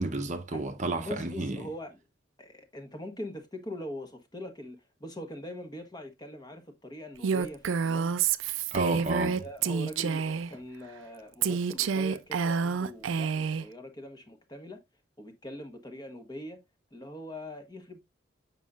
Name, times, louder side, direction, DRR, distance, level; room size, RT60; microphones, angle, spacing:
voice 1, 0.0-1.7 8.7-9.4, right 2 dB, 40° right, 0.7 m, -31 dB
voice 2, 1.0-2.0 2.4-8.2 9.4-14.8 15.2-16.6 16.9-18.0, left 1 dB, 20° left, 1.0 m, -42 dB
Female speech woman speaking, 7.2-10.5 11.4-13.6, right 6 dB, 90° right, 0.4 m, -28 dB
7.3 x 5.4 x 2.4 m
head